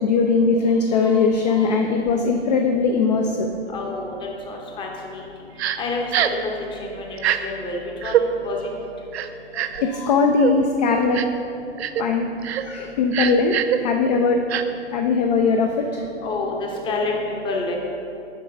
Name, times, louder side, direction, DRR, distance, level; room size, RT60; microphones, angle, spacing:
voice 1, 0.0-3.5 9.5-11.2 12.0-12.3 12.7-14.4 14.9-16.0, left 4 dB, 40° left, 3 dB, 0.4 m, -20 dB
voice 2, 3.7-4.1 4.5-5.2 5.8-8.6 16.2-17.8, left 3 dB, 15° left, 0 dB, 0.7 m, -28 dB
Crying sobbing, 5.6-5.8 6.1-6.4 7.2-7.4 8.0-8.2 9.1-9.8 10.4-10.5 11.1-11.4 11.8-12.0 12.4-12.6 13.1-13.8 14.5-14.6, right 11 dB, 65° right, 0.5 m, -23 dB
6.7 x 3.7 x 5.5 m, 2.7 s
figure-of-eight pair, 120°, 35 cm